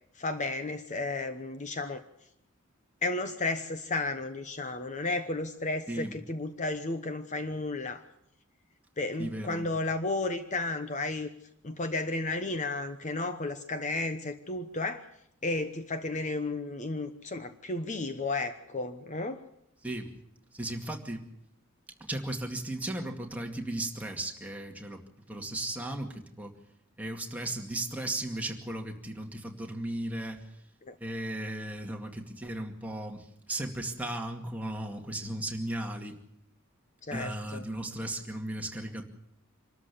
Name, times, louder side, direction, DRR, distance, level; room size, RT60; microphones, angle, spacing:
voice 1, 0.2-2.0 3.0-8.0 9.0-11.3 11.6-15.1 15.4-19.4 30.8-31.0 37.0-37.6, left 2 dB, 35° left, 9 dB, 1.0 m, -33 dB
voice 2, 9.2-9.7 19.8-20.1 20.5-21.2 22.0-25.0 25.3-26.5 27.0-30.4 31.0-36.2 37.1-39.1, right 1 dB, 5° right, 2 dB, 2.2 m, -36 dB
26.0 x 13.5 x 8.4 m, 0.76 s
head